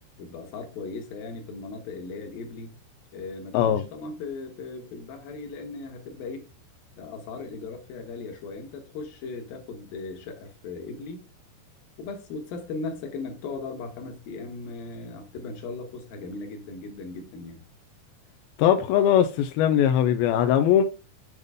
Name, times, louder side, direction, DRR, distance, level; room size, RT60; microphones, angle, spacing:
voice 1, 0.2-2.7 3.1-6.4 7.0-11.2 12.0-17.6, left 3 dB, 65° left, 2.9 m, -37 dB
voice 2, 18.6-20.8, left 10 dB, 80° left, 2.2 m, -20 dB
8.1 x 5.3 x 3.5 m
omnidirectional pair, 4.8 m